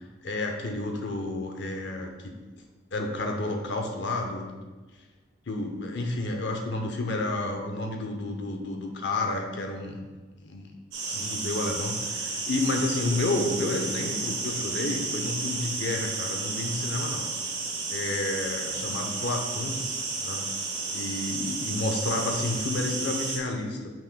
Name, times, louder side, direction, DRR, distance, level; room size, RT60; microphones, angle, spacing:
voice 1, 0.2-2.3 2.9-4.6 5.5-10.0 10.4-10.7 11.1-17.2 17.9-19.8 20.2-20.4 20.9-23.9, left 2 dB, 65° left, 3 dB, 0.7 m, -30 dB
sound 1, 10.9-23.4, right 3 dB, 75° right, 1.7 m, -32 dB
7.6 x 6.0 x 2.2 m, 1.3 s
head